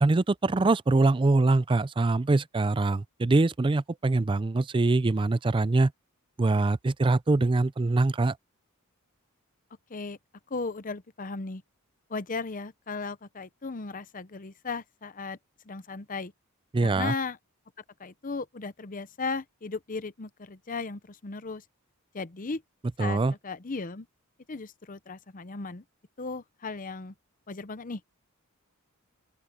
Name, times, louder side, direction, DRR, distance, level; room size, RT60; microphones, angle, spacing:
voice 1, 0.0-5.9 6.4-8.4 16.7-17.1 23.0-23.3, right 3 dB, 20° right, 0.4 m, -23 dB
voice 2, 10.5-11.6 12.1-15.4 15.7-16.3 16.8-17.4 18.0-21.6 22.1-22.6 23.0-24.1 24.5-25.8 26.2-27.1 27.5-28.1, left 4 dB, 35° left, 0.7 m, -36 dB
open air
head